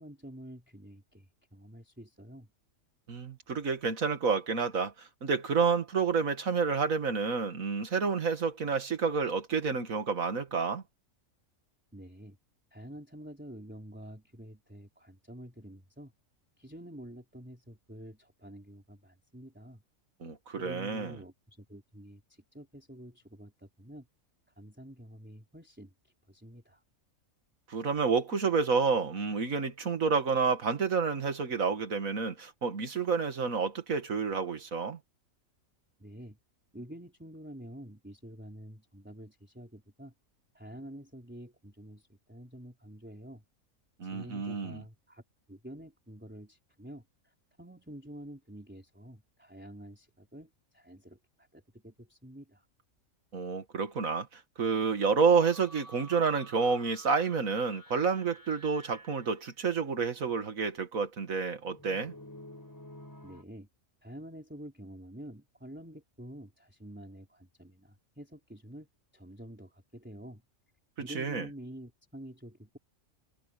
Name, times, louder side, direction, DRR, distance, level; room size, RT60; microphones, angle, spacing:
voice 1, 0.0-2.5 11.9-12.4 12.7-16.1 16.6-19.8 20.6-24.1 24.6-26.8 36.0-36.4 36.7-40.1 40.5-43.4 44.0-45.2 45.5-52.7 63.2-63.7 64.0-68.9 69.1-70.4 71.0-72.8, right 1 dB, 5° right, 3.7 m, -48 dB
voice 2, 3.1-10.8 20.2-21.2 27.7-35.0 44.0-44.8 53.3-62.1 71.1-71.5, right 5 dB, 75° right, 2.2 m, -29 dB
sound 1, 55.3-59.5 61.6-63.4, equal, 15° left, 4.2 m, -51 dB
omnidirectional pair, 1.4 m